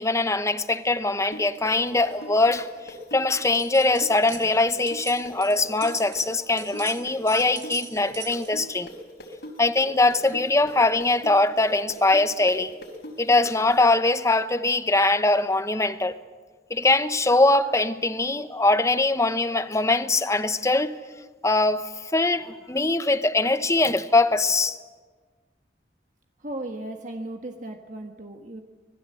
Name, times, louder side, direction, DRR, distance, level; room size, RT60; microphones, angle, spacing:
voice 1, 0.0-2.7 3.1-8.9 9.6-12.7 13.2-16.1 16.7-21.0 21.4-24.8, left 2 dB, 15° left, 0.9 m, -22 dB
sound 1, 1.3-8.9 9.2-13.8, left 1 dB, 70° left, 4.4 m, -40 dB
sound 2, 3.5-4.5 4.7-8.6, right 10 dB, 80° right, 3.5 m, -41 dB
voice 2, 26.4-28.6, right 1 dB, 45° right, 1.4 m, -36 dB
25.5 x 20.5 x 7.8 m
head